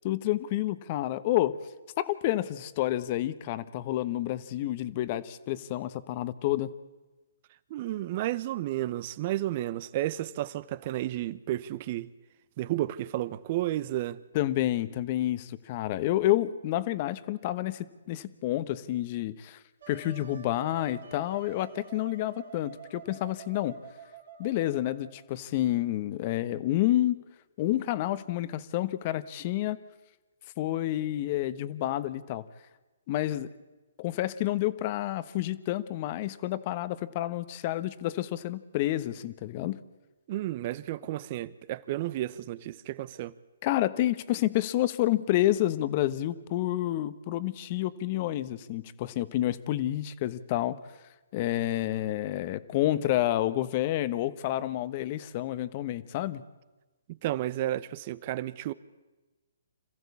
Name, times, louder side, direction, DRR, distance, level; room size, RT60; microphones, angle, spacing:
voice 1, 0.0-1.6 2.0-6.7 14.3-19.6 19.9-23.7 24.4-27.2 27.6-29.8 30.6-32.4 33.1-33.5 34.0-39.8 43.6-50.8 51.3-56.4, left 14 dB, 40° left, 1.2 m, -29 dB
voice 2, 7.7-12.1 12.6-14.2 40.3-43.3 57.1-58.7, right 14 dB, 40° right, 0.9 m, -32 dB
Wind instrument woodwind instrument, 19.8-25.3, right 8 dB, 70° right, 3.7 m, -48 dB
27.0 x 15.0 x 8.5 m
hypercardioid pair, 140°, 0 cm